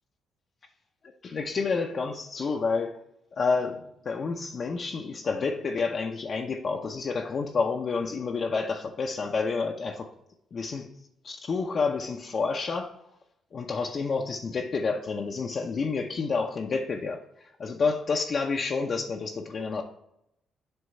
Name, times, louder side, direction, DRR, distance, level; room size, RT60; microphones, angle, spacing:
voice 1, 1.2-2.9 3.4-10.1 10.5-10.9 11.2-12.9 13.5-17.2 17.6-19.8, left 4 dB, 45° left, 0.6 m, -29 dB
7.8 x 3.1 x 5.4 m
cardioid pair, 90°, 0 cm